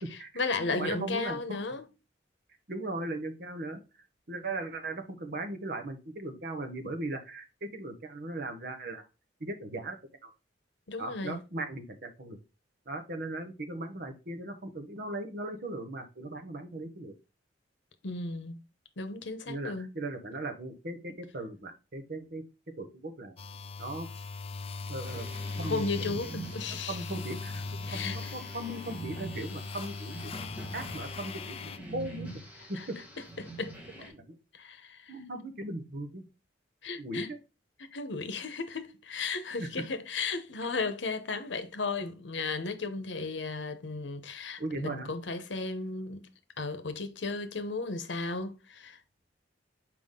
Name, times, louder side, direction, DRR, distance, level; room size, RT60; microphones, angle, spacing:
voice 1, 0.1-1.9 10.9-11.4 18.0-18.6 19.0-19.9 25.6-27.1 27.8-28.4 32.6-33.7 34.0-34.1 34.5-35.2 36.8-37.3 37.8-46.3 46.6-49.0, left 3 dB, 85° left, 0.9 m, -35 dB
voice 2, 0.7-1.6 2.7-3.8 4.3-9.0 9.4-10.0 10.2-10.3 11.0-12.4 12.9-17.1 19.5-22.4 22.8-23.3 23.8-24.1 24.9-25.3 25.6-25.8 26.1-26.2 26.7-27.6 27.9-30.3 30.7-32.3 32.7-33.0 34.1-34.4 35.1-36.3 37.0-37.4 39.6-39.7 44.6-45.1, right 2 dB, 55° right, 1.1 m, -38 dB
sound 1, 23.4-31.8, left 3 dB, 35° left, 0.4 m, -39 dB
sound 2, 25.0-34.1, right 2 dB, 10° right, 1.9 m, -45 dB
5.7 x 4.8 x 3.7 m
head